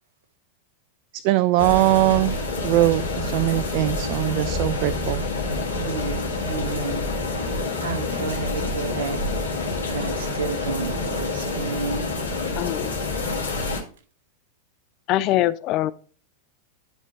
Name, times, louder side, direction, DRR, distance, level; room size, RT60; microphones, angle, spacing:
voice 1, 1.1-5.2, right 17 dB, 45° right, 0.3 m, -21 dB
sound 1, 1.6-13.8, left 3 dB, 75° left, 2.3 m, -27 dB
voice 2, 5.7-7.1 7.8-9.2 9.9-12.1, right 4 dB, 60° right, 1.2 m, -31 dB
voice 3, 12.6-12.9 15.1-15.9, left 14 dB, 40° left, 0.5 m, -23 dB
10.5 x 4.5 x 4.2 m
figure-of-eight pair, 90°, 0 cm